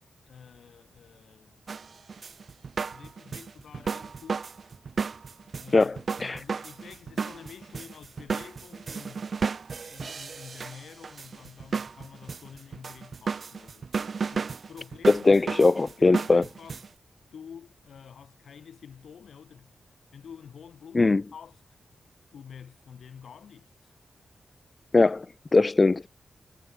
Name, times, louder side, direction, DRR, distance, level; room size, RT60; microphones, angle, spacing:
voice 1, 0.3-1.6 1.9-2.0 2.9-4.6 5.6-9.3 9.9-13.9 14.3-16.9 17.3-19.7 20.1-21.6 22.3-23.9, left 7 dB, 80° left, 4.8 m, -48 dB
sound 1, 1.7-16.9, right 5 dB, 60° right, 0.7 m, -34 dB
voice 2, 5.7-6.4 15.1-16.4 20.9-21.2 24.9-25.3 25.5-26.1, left 3 dB, 40° left, 0.6 m, -20 dB
cardioid pair, 50°, 0 cm